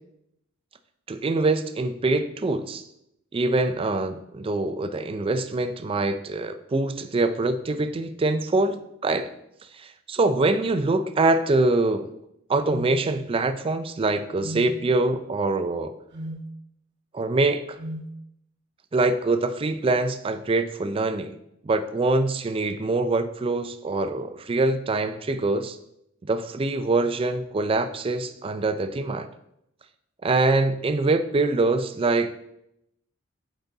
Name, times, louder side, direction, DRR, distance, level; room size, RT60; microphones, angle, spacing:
voice 1, 1.1-2.8 3.3-9.3 9.8-12.1 12.5-15.9 17.1-17.6 18.9-21.4 21.6-25.8 26.2-29.3 30.2-32.3, right 2 dB, 25° right, 10 dB, 0.4 m, -24 dB
sound 1, 12.7-12.9 14.4-14.7 16.1-16.4 17.8-18.1, equal, 55° right, 0.9 m, -34 dB
7.7 x 4.0 x 3.5 m, 0.80 s
head